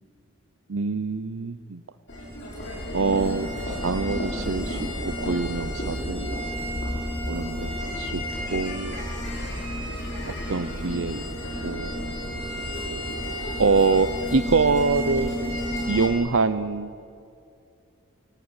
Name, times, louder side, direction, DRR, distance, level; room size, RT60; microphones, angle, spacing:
voice 1, 0.7-1.8 2.9-6.4 7.3-8.2 8.5-9.0 10.3-11.2 11.6-12.1 13.6-15.5 15.9-16.9, right 4 dB, 65° right, 11 dB, 0.7 m, -25 dB
sound 1, 2.1-16.1, equal, 55° left, 7.6 m, -31 dB
28.5 x 17.0 x 9.8 m, 2.5 s
head